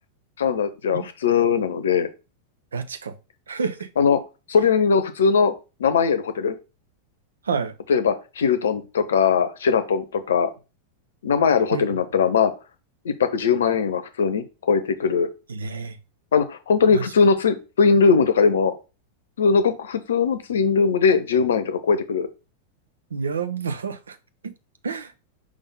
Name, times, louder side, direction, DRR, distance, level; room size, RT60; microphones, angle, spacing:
voice 1, 0.4-2.1 4.0-4.2 4.5-5.5 5.8-6.6 7.9-10.5 11.2-12.5 13.0-15.3 16.3-18.7 19.4-22.3, left 5 dB, 65° left, 0.7 m, -20 dB
voice 2, 2.7-3.1 3.5-3.9 7.5-7.7 11.7-11.8 15.5-16.0 16.9-17.0 23.1-24.2 24.4-24.5 24.8-25.1, right 5 dB, 70° right, 0.7 m, -28 dB
5.1 x 3.6 x 5.3 m
figure-of-eight pair, 90°, 0 cm